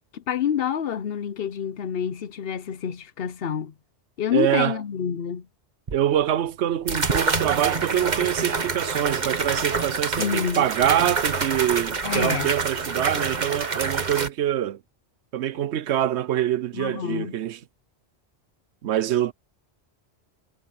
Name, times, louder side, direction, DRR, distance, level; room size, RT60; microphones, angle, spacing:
voice 1, 0.1-3.7 4.2-5.5 10.2-10.7 12.0-12.5 16.7-17.4, left 8 dB, 65° left, 0.9 m, -27 dB
voice 2, 4.3-4.8 5.9-14.8 15.3-17.6 18.8-19.3, right 11 dB, 90° right, 1.0 m, -25 dB
sound 1, 5.9-6.0 6.9-14.3, right 4 dB, 45° right, 1.4 m, -26 dB
omnidirectional pair, 1.1 m